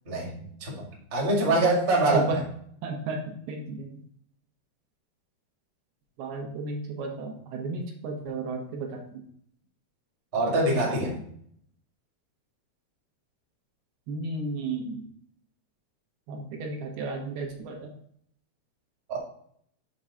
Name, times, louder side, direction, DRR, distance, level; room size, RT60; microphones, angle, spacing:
voice 1, 0.6-2.4 10.3-11.1 19.1-19.2, right 2 dB, 30° right, -3 dB, 1.0 m, -24 dB
voice 2, 2.8-3.9 6.2-9.2 14.1-15.0 16.3-17.9, right 3 dB, 75° right, 1 dB, 2.7 m, -33 dB
7.3 x 3.7 x 5.6 m, 0.66 s
omnidirectional pair, 4.7 m